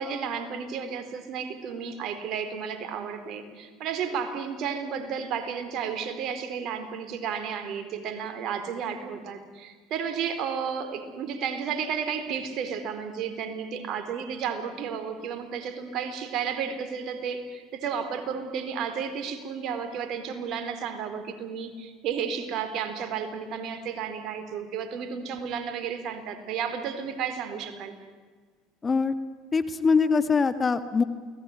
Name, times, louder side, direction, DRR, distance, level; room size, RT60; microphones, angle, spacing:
voice 1, 0.0-28.0, right 7 dB, 60° right, 9 dB, 4.3 m, -32 dB
voice 2, 28.8-29.1 29.5-31.0, left 5 dB, 25° left, 11 dB, 1.9 m, -23 dB
29.0 x 19.5 x 9.8 m, 1.5 s
hypercardioid pair, 80°, 0 cm